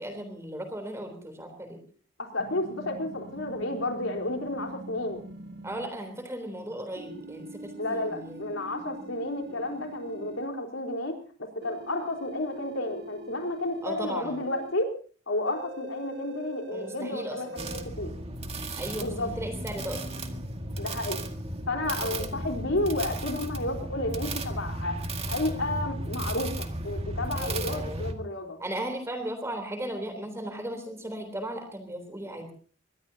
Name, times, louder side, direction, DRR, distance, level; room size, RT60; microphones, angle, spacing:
voice 1, 0.0-1.8 5.6-8.4 8.7-9.1 9.5-9.6 13.8-14.4 16.7-17.7 18.8-20.1 22.0-22.4 27.4-28.0 28.6-32.5, right 1 dB, 15° right, 5 dB, 3.6 m, -37 dB
voice 2, 2.2-5.2 7.8-14.9 15.3-18.1 18.9-19.3 20.8-21.2 21.7-25.0 25.3-28.6, left 1 dB, 85° left, 3 dB, 4.2 m, -31 dB
sound 1, 2.4-5.9 7.0-10.5 11.6-14.7 15.5-17.8, right 1 dB, 60° right, 1.6 m, -43 dB
sound 2, 17.6-28.1, right 1 dB, 30° right, 2.0 m, -34 dB
23.5 x 21.0 x 2.8 m, 0.42 s
head